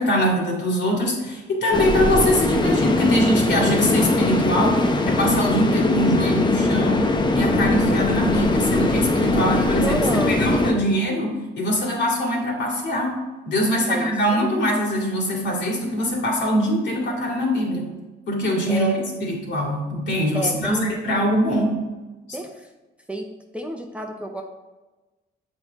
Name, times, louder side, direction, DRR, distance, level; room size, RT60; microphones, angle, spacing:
voice 1, 0.0-13.2 13.4-17.9 18.3-18.9 19.2-21.8, equal, 60° left, -1 dB, 2.4 m, -23 dB
sound 1, 1.7-10.7, left 2 dB, 20° left, 0.8 m, -21 dB
voice 2, 9.3-10.3 10.7-10.8 13.9-14.5 18.7-19.0 20.3-21.0 22.3-22.7 23.1-23.3 23.5-24.4, right 2 dB, 5° right, 2 dB, 0.8 m, -30 dB
7.8 x 4.7 x 4.0 m, 1.2 s
cardioid pair, 90°, 20 cm